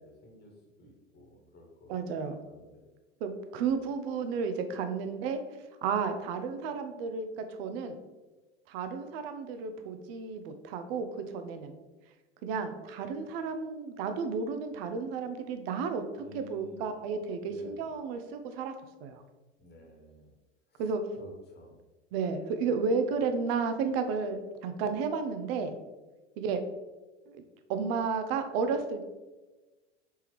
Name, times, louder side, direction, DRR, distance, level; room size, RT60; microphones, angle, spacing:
voice 1, 0.0-2.0 2.4-2.9 16.2-16.9 17.4-17.9 19.6-20.3 20.7-20.8 21.1-21.8, left 2 dB, 30° left, 1 dB, 1.2 m, -53 dB
voice 2, 1.9-2.4 3.2-5.4 5.8-8.0 8.7-11.1 11.3-11.7 12.4-16.0 16.3-18.7 19.0-19.2 20.8-21.0 22.1-25.8 26.4-26.6 27.3-27.4 27.7-29.1, right 5 dB, 60° right, 8 dB, 0.6 m, -32 dB
4.4 x 3.6 x 3.0 m, 1.2 s
hypercardioid pair, 85°, 35 cm